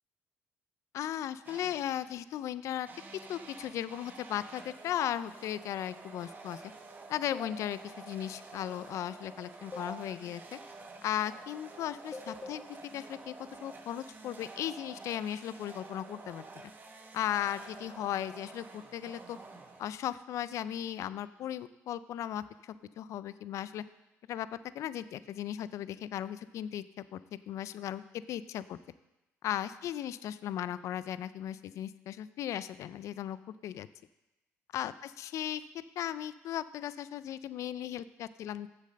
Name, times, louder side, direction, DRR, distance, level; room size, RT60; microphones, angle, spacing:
voice 1, 0.9-2.9 3.3-6.6 7.1-10.6 11.0-12.6 12.9-13.3 13.6-16.7 17.1-19.4 19.8-23.8 24.3-24.5 24.7-27.2 27.5-28.0 28.3-28.8 29.4-33.4 33.6-33.9 34.7-35.6 36.0-38.7, left 11 dB, 65° left, 15 dB, 0.4 m, -36 dB
sound 1, 1.5-2.1 2.9-20.2, right 3 dB, 35° right, 1.3 m, -50 dB
sound 2, 4.9-5.1 7.3-7.5 9.7-9.9 12.1-12.5, left 3 dB, 25° left, 1.2 m, -40 dB
7.5 x 7.4 x 6.6 m, 0.99 s
supercardioid pair, 80°, 6 cm